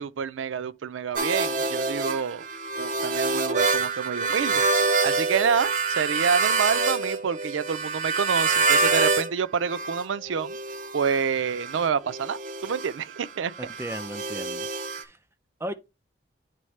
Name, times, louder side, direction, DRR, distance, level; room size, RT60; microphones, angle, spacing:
voice 1, 0.0-2.5 2.8-10.6 10.9-13.5, right 6 dB, 90° right, 0.4 m, -28 dB
sound 1, 1.2-9.3 9.6-15.0, right 4 dB, 45° right, 0.7 m, -26 dB
voice 2, 13.6-14.7 15.0-15.2 15.6-15.7, right 1 dB, 15° right, 0.4 m, -35 dB
9.0 x 3.5 x 3.2 m
head